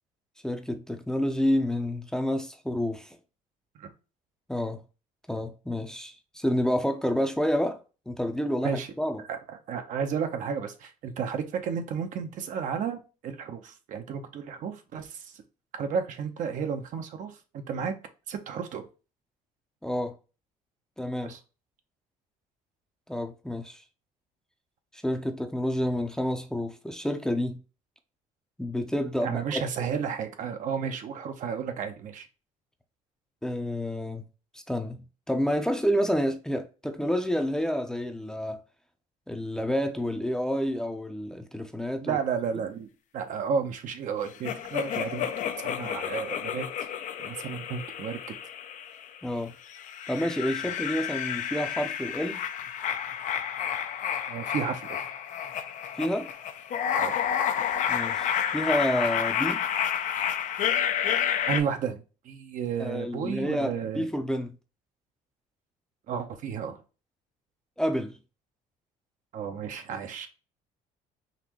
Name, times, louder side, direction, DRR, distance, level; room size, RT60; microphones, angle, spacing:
voice 1, 0.4-3.2 4.5-4.8 5.3-7.8 8.1-9.2 19.8-20.1 21.0-21.3 23.1-23.8 24.9-27.6 28.6-29.6 33.4-34.2 34.5-38.6 39.3-42.2 49.2-49.5 50.1-52.4 56.0-56.3 57.9-59.6 62.8-64.5 67.8-68.1, equal, 5° left, 0.6 m, -29 dB
voice 2, 9.3-15.3 15.7-17.9 18.3-18.8 21.2-21.4 29.2-32.3 42.0-42.9 43.1-45.3 45.6-46.7 47.2-48.2 50.6-50.7 54.3-55.0 57.0-57.2 61.5-64.1 66.1-66.8 69.3-70.3, right 6 dB, 60° right, 0.8 m, -32 dB
sound 1, 44.4-49.2 49.7-61.6, left 9 dB, 60° left, 0.6 m, -30 dB
4.1 x 2.7 x 2.9 m
cardioid pair, 95°, 15 cm